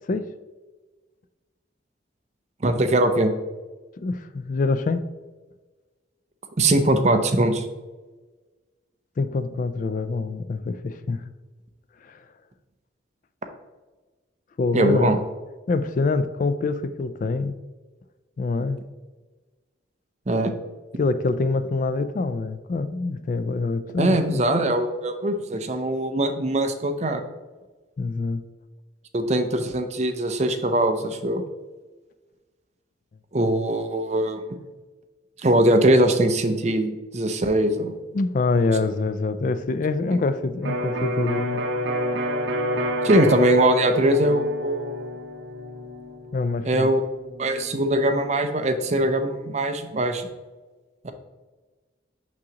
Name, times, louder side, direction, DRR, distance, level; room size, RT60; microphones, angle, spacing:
voice 1, 2.6-3.3 6.6-7.7 14.7-15.2 20.3-20.5 24.0-27.2 29.1-31.4 33.3-34.6 35.4-37.9 40.1-40.2 43.0-45.0 46.6-47.0 47.4-50.3 51.0-51.1, right 1 dB, 35° right, 7 dB, 0.6 m, -21 dB
voice 2, 4.0-5.0 9.2-11.2 12.0-12.2 14.6-15.2 15.7-17.5 18.4-18.8 21.0-24.4 28.0-28.4 38.1-41.6 46.3-46.9, left 3 dB, 45° left, 12 dB, 0.3 m, -25 dB
Electric guitar, 40.6-48.4, equal, 75° right, 0.7 m, -29 dB
6.1 x 6.1 x 2.9 m, 1.3 s
head